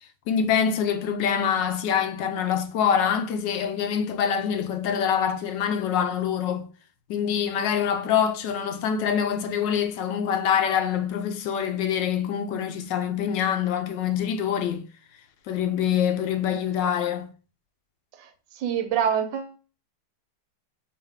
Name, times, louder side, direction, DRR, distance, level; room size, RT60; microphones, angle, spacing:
voice 1, 0.3-6.7 7.1-14.8 15.5-17.3, left 8 dB, 75° left, 1.3 m, -25 dB
voice 2, 18.1-19.6, right 8 dB, 85° right, 1.4 m, -27 dB
4.7 x 2.9 x 3.4 m
omnidirectional pair, 2.0 m